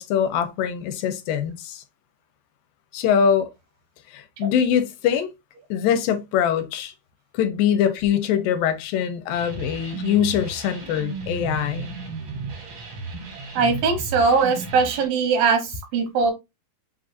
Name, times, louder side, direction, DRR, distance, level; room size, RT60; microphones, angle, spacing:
voice 1, 0.0-1.8 2.9-3.5 4.1-5.3 5.7-6.9 7.3-11.9, left 8 dB, 85° left, 2.2 m, -23 dB
sound 1, 9.3-15.1, right 3 dB, 65° right, 1.2 m, -34 dB
voice 2, 13.6-16.3, right 5 dB, 85° right, 3.0 m, -21 dB
7.2 x 2.5 x 2.6 m
omnidirectional pair, 4.1 m